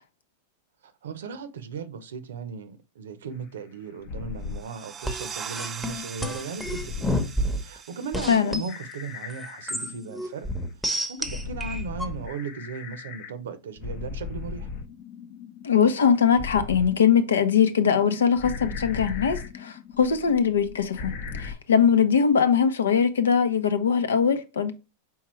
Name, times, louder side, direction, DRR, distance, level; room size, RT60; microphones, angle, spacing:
voice 1, 0.8-7.2 7.6-10.5 11.1-14.7, right 5 dB, 80° right, 0.7 m, -37 dB
sound 1, 4.1-4.7 6.6-7.2 8.7-10.2 11.2-13.3 13.8-21.5, left 5 dB, 50° left, 0.7 m, -38 dB
sound 2, 4.4-9.8, right 7 dB, 30° right, 0.5 m, -41 dB
sound 3, 5.1-7.8 8.1-8.7 9.3-12.1, equal, ahead, 0.8 m, -30 dB
voice 2, 8.3-8.6 15.6-24.7, left 7 dB, 85° left, 0.7 m, -21 dB
4.6 x 3.5 x 3.1 m
hypercardioid pair, 110°, 0 cm